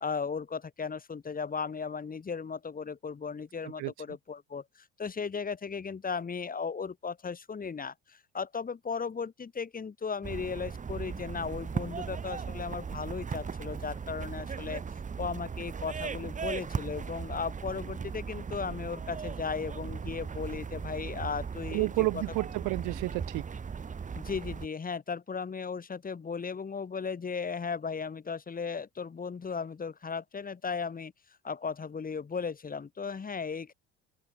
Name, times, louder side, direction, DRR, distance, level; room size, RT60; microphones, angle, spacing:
voice 1, 0.0-14.8 15.2-21.9 22.1-22.2 24.2-31.1 31.4-33.7, left 5 dB, 30° left, 2.5 m, -36 dB
sound 1, 10.2-24.7, right 6 dB, 25° right, 1.1 m, -38 dB
voice 2, 21.7-23.5, right 24 dB, 70° right, 1.3 m, -30 dB
open air
supercardioid pair, 80°, 31 cm